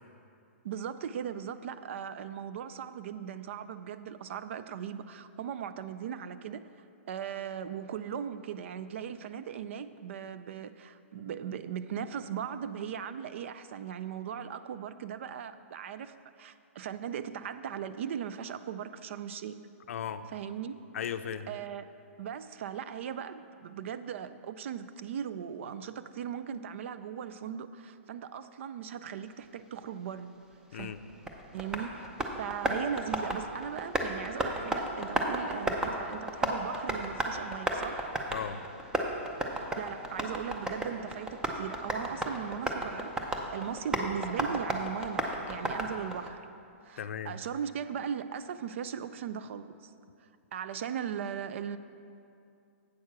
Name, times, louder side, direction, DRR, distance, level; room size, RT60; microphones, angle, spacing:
voice 1, 0.6-6.6 7.1-19.7 20.3-20.8 21.5-30.3 30.7-30.9 31.5-32.1 32.4-38.1 39.5-46.4 46.8-49.9 50.5-51.8, right 8 dB, 60° right, 12 dB, 0.4 m, -38 dB
voice 2, 19.9-20.3 20.9-21.6 30.7-31.0 38.3-38.6 47.0-47.4, left 8 dB, 70° left, 11 dB, 0.5 m, -36 dB
Tap, 30.8-46.3, right 1 dB, 10° right, 0.6 m, -34 dB
8.4 x 6.4 x 5.9 m, 2.5 s
hypercardioid pair, 150°, 8 cm